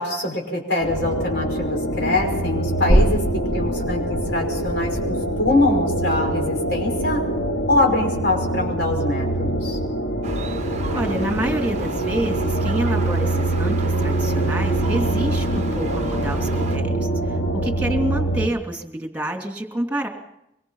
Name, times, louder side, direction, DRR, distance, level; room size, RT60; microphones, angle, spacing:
voice 1, 0.0-3.2 3.5-5.0 5.4-7.2 7.7-9.8, left 2 dB, 60° left, 1 dB, 5.7 m, -23 dB
sound 1, 0.8-18.5, right 1 dB, 80° left, 2.8 m, -24 dB
sound 2, 2.9-10.2 10.5-10.6, equal, 30° left, 2.3 m, -27 dB
Gull seagull, 10.2-16.8, right 2 dB, 40° right, 1.0 m, -32 dB
voice 2, 10.9-17.1 17.5-20.1, right 1 dB, 10° right, 3 dB, 2.8 m, -27 dB
25.0 x 23.0 x 5.7 m, 0.83 s
head